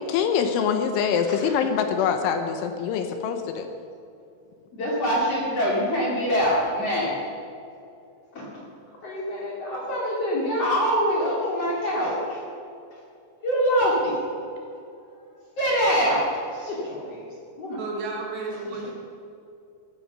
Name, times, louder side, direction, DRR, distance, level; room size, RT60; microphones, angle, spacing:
voice 1, 0.1-3.7, left 7 dB, 80° left, 6 dB, 3.2 m, -24 dB
voice 2, 4.7-7.2 8.3-8.6 9.0-12.4 13.4-14.2 15.6-17.3 17.6-17.8, equal, 40° left, -4 dB, 2.6 m, -25 dB
voice 3, 17.8-18.9, right 3 dB, 65° right, -1 dB, 3.8 m, -32 dB
15.0 x 13.5 x 6.1 m, 2.5 s
omnidirectional pair, 5.8 m